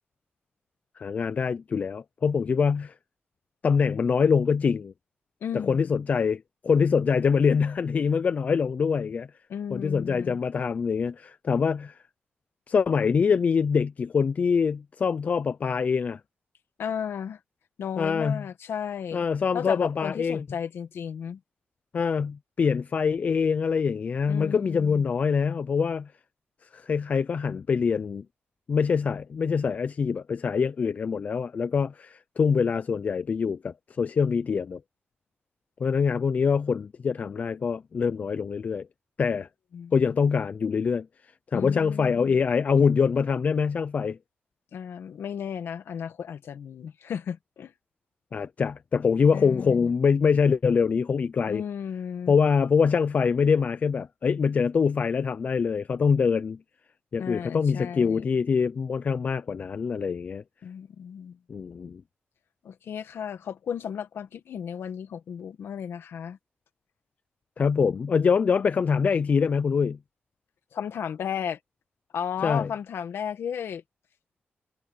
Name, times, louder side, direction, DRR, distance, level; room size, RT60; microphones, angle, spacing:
voice 1, 1.0-2.9 3.6-4.9 5.5-9.3 9.7-12.0 12.7-16.2 18.0-18.5 19.1-20.4 21.9-26.1 26.7-28.3 28.7-34.8 35.8-38.9 39.2-39.5 39.9-44.2 48.3-51.6 52.3-56.6 57.1-60.4 61.5-62.0 67.6-70.0 72.4-72.7, left 6 dB, 40° left, 0.4 m, -24 dB
voice 2, 5.4-5.9 9.5-10.4 16.8-17.4 17.8-19.2 19.5-21.4 24.3-25.0 39.7-39.9 41.5-42.4 44.7-47.7 49.3-49.9 51.5-52.3 57.2-58.2 60.6-61.4 62.6-66.4 70.7-71.6 72.1-73.8, left 8 dB, 85° left, 1.7 m, -34 dB
wide cardioid pair, 165°, 4 cm